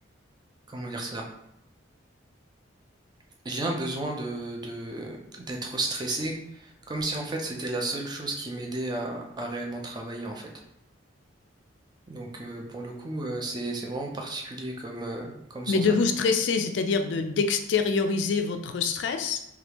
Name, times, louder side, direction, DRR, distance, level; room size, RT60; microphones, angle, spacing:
voice 1, 0.7-1.2 3.4-10.5 12.1-15.9, right 2 dB, 20° right, 1 dB, 0.4 m, -33 dB
voice 2, 15.7-19.4, left 4 dB, 65° left, 6 dB, 0.3 m, -25 dB
3.3 x 2.3 x 2.9 m, 0.81 s
head